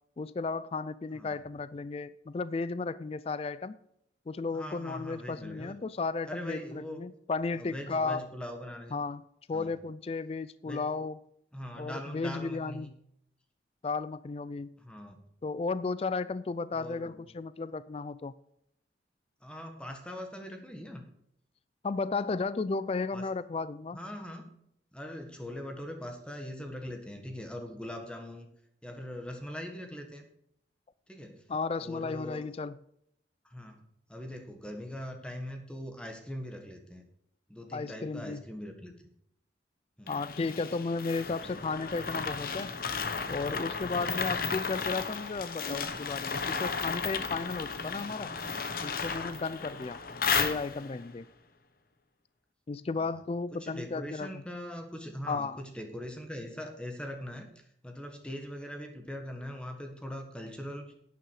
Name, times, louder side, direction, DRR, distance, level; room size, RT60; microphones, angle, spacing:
voice 1, 0.2-3.8 4.3-8.3 8.9-9.2 9.5-11.2 11.7-12.9 13.8-14.7 15.4-18.3 21.8-24.0 31.5-32.8 37.7-38.4 40.1-42.7 43.3-48.3 48.8-50.0 50.3-51.3 52.7-54.4 55.3-55.6, left 4 dB, 35° left, 0.3 m, -34 dB
voice 2, 4.5-5.7 6.2-7.0 7.6-9.0 9.5-9.7 10.6-10.9 11.5-12.9 14.8-15.2 16.7-17.3 19.4-21.1 23.1-23.3 23.9-24.5 24.9-28.5 28.8-30.3 31.1-31.4 31.8-32.5 33.4-37.0 37.5-38.9 40.0-40.2 41.3-41.6 52.9-53.1 53.5-60.9, equal, 5° left, 1.4 m, -41 dB
sound 1, 40.1-51.0, left 5 dB, 55° left, 0.9 m, -34 dB
11.0 x 9.2 x 4.7 m
head